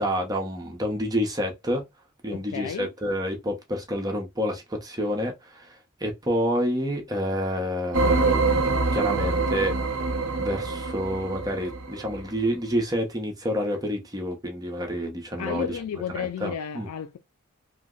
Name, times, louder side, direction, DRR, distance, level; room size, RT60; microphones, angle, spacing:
voice 1, 0.0-1.8 2.2-5.7 6.0-9.7 10.4-15.6 16.2-16.9, equal, 15° right, 0.6 m, -28 dB
voice 2, 2.3-2.9 15.4-17.2, left 8 dB, 90° left, 0.3 m, -33 dB
sound 1, 7.9-12.2, right 3 dB, 65° right, 0.6 m, -25 dB
2.8 x 2.1 x 3.6 m
head